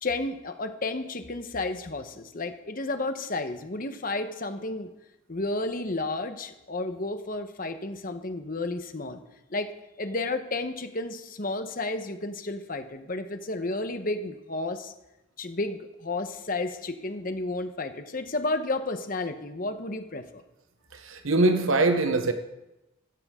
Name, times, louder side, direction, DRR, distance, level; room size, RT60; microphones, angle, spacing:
voice 1, 0.0-4.9 5.3-9.2 9.5-9.7 10.0-14.9 15.4-20.3, left 2 dB, 40° left, 1.1 m, -32 dB
voice 2, 20.9-22.3, right 2 dB, 70° right, 0.9 m, -23 dB
15.5 x 14.5 x 3.8 m
head